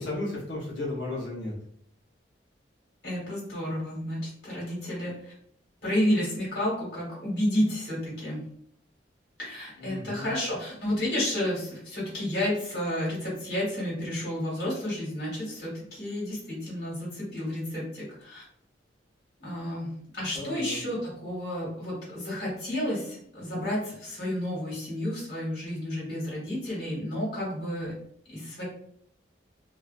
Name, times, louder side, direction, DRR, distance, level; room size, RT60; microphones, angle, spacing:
voice 1, 0.0-1.5 9.8-10.3 20.3-20.8, left 2 dB, 75° left, -5 dB, 0.8 m, -34 dB
voice 2, 3.0-5.3 5.8-8.4 9.4-18.4 19.4-27.9 28.3-28.6, left 1 dB, 60° left, -6 dB, 1.3 m, -31 dB
2.4 x 2.3 x 2.4 m, 0.66 s
head